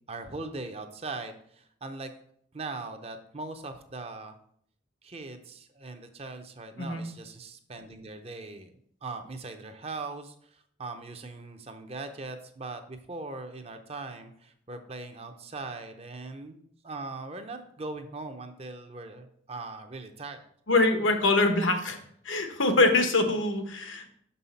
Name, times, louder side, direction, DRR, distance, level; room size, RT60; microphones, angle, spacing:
voice 1, 0.1-2.1 2.5-4.3 5.0-8.7 9.0-20.4 20.8-20.9, right 3 dB, 30° right, 7 dB, 0.6 m, -40 dB
voice 2, 20.7-22.0 22.2-24.1, left 2 dB, 90° left, 5 dB, 1.0 m, -24 dB
6.4 x 5.5 x 4.1 m, 0.66 s
head